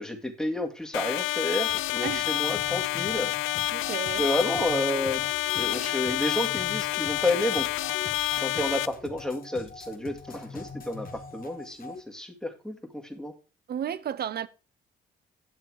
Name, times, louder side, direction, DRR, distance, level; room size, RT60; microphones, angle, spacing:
voice 1, 0.0-3.3 4.2-5.3 5.5-7.7 8.4-13.3, left 1 dB, 5° left, 2.0 m, -30 dB
sound 1, 0.9-8.9, left 16 dB, 90° left, 0.5 m, -28 dB
sound 2, 1.7-12.0, left 4 dB, 45° left, 1.7 m, -43 dB
voice 2, 3.7-4.3 13.7-14.5, right 9 dB, 55° right, 0.7 m, -33 dB
9.8 x 7.3 x 4.7 m
cardioid pair, 90°, 20 cm